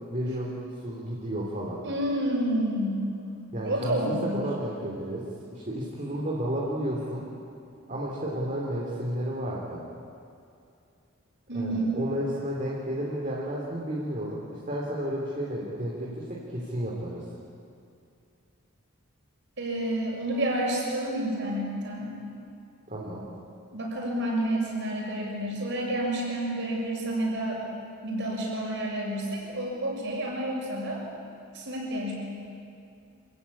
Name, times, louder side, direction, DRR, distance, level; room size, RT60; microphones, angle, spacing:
voice 1, 0.1-0.5 0.8-1.8 3.5-7.2 7.9-9.8 11.5-17.2 22.9-23.3, equal, 35° right, -4 dB, 3.3 m, -32 dB
voice 2, 1.8-3.1 3.6-4.5 11.5-12.0 19.6-22.1 23.7-27.6 28.0-31.0 31.5-32.1, right 1 dB, 55° right, -2 dB, 7.1 m, -29 dB
27.0 x 16.5 x 10.0 m, 2.6 s
head